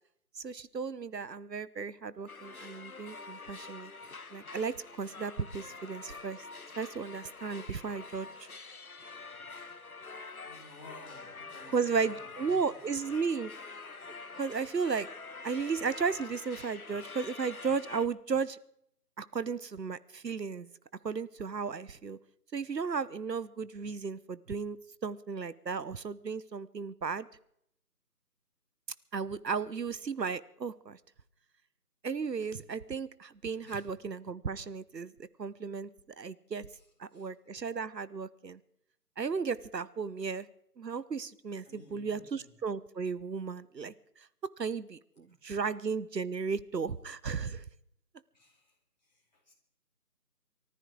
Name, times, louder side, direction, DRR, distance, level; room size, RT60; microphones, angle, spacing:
voice 1, 0.4-3.9 4.3-6.4 6.8-8.3 11.7-13.5 14.4-15.1 15.4-18.6 19.2-20.7 21.0-22.2 22.5-24.8 25.0-27.3 29.1-31.0 32.0-35.9 36.2-36.7 37.0-38.6 39.2-40.5 40.8-44.3 44.6-47.6, right 5 dB, 80° right, 17 dB, 1.0 m, -34 dB
sound 1, 2.3-18.1, left 4 dB, 60° left, 1.2 m, -46 dB
voice 2, 10.4-12.8 13.0-13.2 33.6-33.9 36.7-36.9 37.1-37.6 41.6-42.6 45.2-45.7 48.3-49.5, left 2 dB, 25° left, -4 dB, 4.5 m, -56 dB
24.0 x 14.0 x 3.8 m, 0.72 s
figure-of-eight pair, 175°, 49 cm